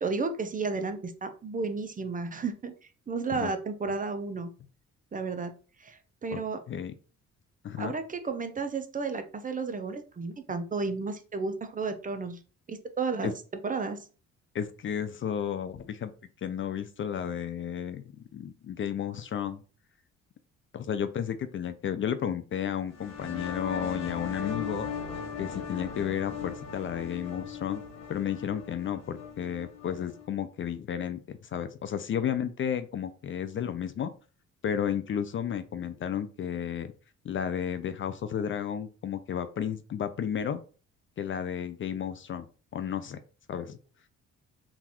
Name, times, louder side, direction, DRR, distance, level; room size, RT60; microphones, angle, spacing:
voice 1, 0.0-2.7 3.1-4.5 5.1-5.5 5.8-6.6 7.8-12.4 12.7-13.3 13.6-14.1, right 4 dB, 25° right, 8 dB, 0.5 m, -32 dB
voice 2, 14.5-16.1 16.4-19.6 20.7-24.9 25.4-27.8 28.1-34.1 34.6-36.9 37.2-40.6 41.2-42.5 42.7-43.2 43.5-43.8, left 8 dB, 40° left, 11 dB, 0.4 m, -32 dB
sound 1, 22.9-30.3, left 6 dB, 60° left, 1.2 m, -38 dB
3.8 x 2.4 x 2.9 m, 0.37 s
cardioid pair, 90°, 30 cm